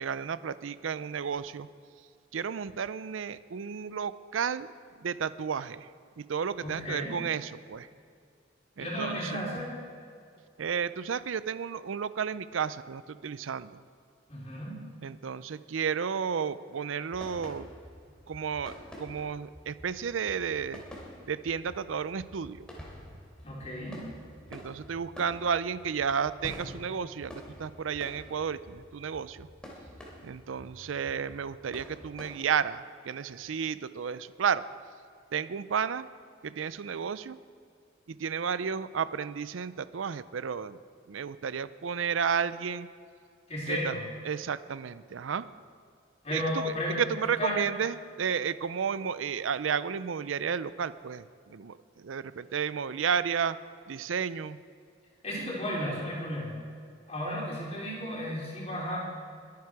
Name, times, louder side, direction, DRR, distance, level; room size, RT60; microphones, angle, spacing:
voice 1, 0.0-1.7 2.3-4.7 5.0-5.9 6.2-7.9 8.8-9.4 10.6-13.7 15.0-17.7 18.3-20.8 21.3-22.6 24.5-27.3 27.6-29.5 30.2-34.6 35.3-36.1 36.4-37.4 38.1-40.8 41.1-42.9 43.7-43.9 44.2-45.5 46.3-53.6 53.9-54.6, right 7 dB, 80° right, 15 dB, 0.5 m, -32 dB
voice 2, 6.6-7.2 8.8-9.7 14.3-14.8 23.4-24.0 43.5-44.0 46.2-47.6 55.2-56.6 57.1-59.0, left 1 dB, 35° left, -4 dB, 4.1 m, -34 dB
sound 1, 17.1-32.3, equal, 5° left, 3.0 m, -48 dB
22.5 x 9.5 x 4.8 m, 2.4 s
head